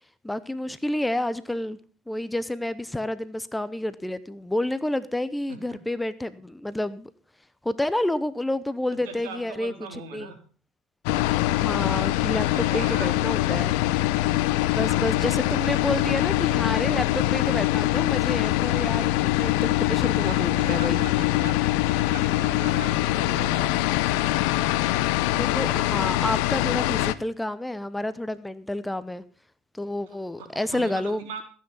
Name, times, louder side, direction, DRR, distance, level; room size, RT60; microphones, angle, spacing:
voice 1, 0.2-1.8 2.1-7.1 7.6-10.3 11.5-13.7 14.7-21.1 25.3-29.2 29.7-31.2, left 1 dB, 5° left, 15 dB, 0.8 m, -29 dB
voice 2, 9.0-10.4 12.5-13.6 18.8-19.0 20.1-23.8 30.4-31.4, right 5 dB, 70° right, 5 dB, 3.5 m, -40 dB
sound 1, 11.1-27.1, left 16 dB, 65° left, 0.7 m, -23 dB
15.0 x 8.8 x 5.6 m, 0.40 s
hypercardioid pair, 75°, 0 cm